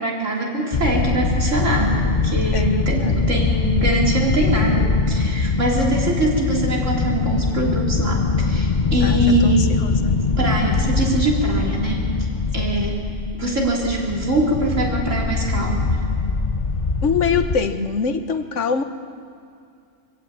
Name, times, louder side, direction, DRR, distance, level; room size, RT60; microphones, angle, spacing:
voice 1, 0.0-9.7 10.4-12.1 12.5-13.0 13.3-16.0, right 1 dB, 80° right, -2 dB, 4.0 m, -23 dB
sound 1, 0.7-17.6, left 4 dB, 40° left, 1.0 m, -22 dB
voice 2, 2.5-3.2 9.0-9.6 9.8-9.9 12.6-12.9 17.0-18.8, left 5 dB, 70° left, 8 dB, 1.4 m, -24 dB
23.5 x 15.5 x 8.8 m, 2.4 s
omnidirectional pair, 1.3 m